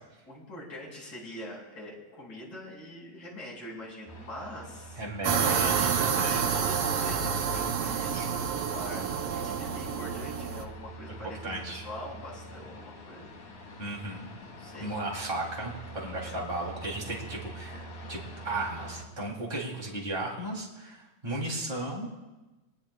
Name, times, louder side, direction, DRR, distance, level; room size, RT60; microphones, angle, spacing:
voice 1, 0.3-5.0 5.4-13.3 14.6-15.0 16.2-16.3, left 1 dB, 35° left, -5 dB, 6.3 m, -43 dB
sound 1, 4.1-19.0, right 2 dB, 80° left, 3.7 m, -45 dB
voice 2, 4.9-6.4 8.1-8.2 11.2-11.8 13.8-14.3 14.8-22.1, right 2 dB, 15° right, -2 dB, 3.2 m, -35 dB
sound 2, 5.2-10.6, right 7 dB, 65° right, 1.6 m, -29 dB
24.0 x 20.0 x 2.4 m, 1.1 s
omnidirectional pair, 3.4 m